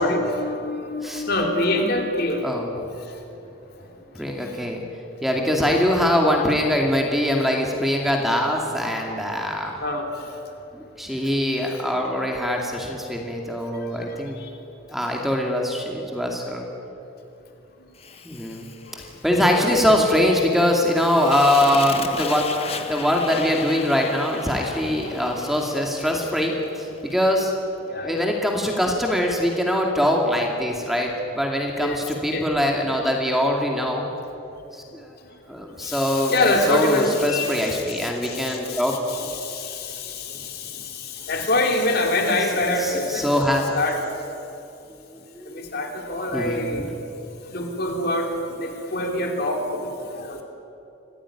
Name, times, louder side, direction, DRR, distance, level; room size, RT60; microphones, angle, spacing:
voice 1, 0.0-2.4 3.1-3.4 9.8-10.1 11.7-11.8 14.1-14.5 19.0-19.1 19.5-20.1 20.6-20.7 24.6-24.7 27.9-28.3 31.8-32.0 32.3-32.5 35.8-44.0 45.5-46.9 47.5-48.3 48.6-50.4, left 2 dB, 50° left, 2 dB, 3.4 m, -26 dB
voice 2, 4.1-4.8 5.2-9.8 10.7-14.4 14.9-16.6 18.2-18.7 19.0-22.5 22.9-27.5 28.0-34.1 34.7-35.2 35.5-39.0 42.8-43.6 45.3-45.7 46.3-46.8, left 1 dB, ahead, 0 dB, 2.4 m, -23 dB
Fire, 18.0-27.2, left 4 dB, 30° left, 1.5 m, -36 dB
26.0 x 17.5 x 9.9 m, 2.9 s
head